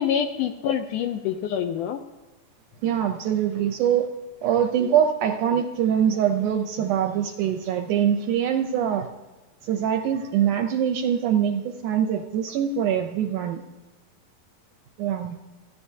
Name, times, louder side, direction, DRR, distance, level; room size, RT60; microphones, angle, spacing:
voice 1, 0.0-2.0, left 8 dB, 80° left, 7 dB, 1.9 m, -26 dB
voice 2, 2.8-4.1 4.4-9.1 9.6-13.6 15.0-15.4, right 9 dB, 80° right, 6 dB, 1.9 m, -23 dB
28.5 x 9.9 x 2.7 m, 1.2 s
omnidirectional pair, 4.1 m